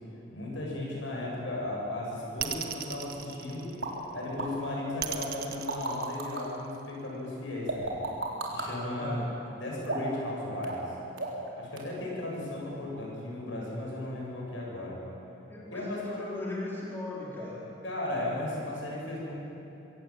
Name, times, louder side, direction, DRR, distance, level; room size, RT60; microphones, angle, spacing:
voice 1, 0.3-3.7 4.1-8.0 8.5-9.2 9.6-10.8 11.5-15.0 15.7-16.3 17.8-19.3, left 1 dB, 80° left, -3 dB, 7.6 m, -35 dB
sound 1, 2.4-4.1 5.0-6.8, right 9 dB, 50° right, 1.5 m, -36 dB
sound 2, 3.8-3.9 4.4-4.5 5.4-6.4 7.7-8.7 9.8-10.2 10.6-10.9 11.2-11.5 11.8-11.9, right 3 dB, 80° right, 3.8 m, -33 dB
voice 2, 9.0-9.3 15.5-17.7, left 2 dB, 10° left, -5 dB, 3.7 m, -38 dB
24.0 x 17.0 x 8.9 m, 2.9 s
head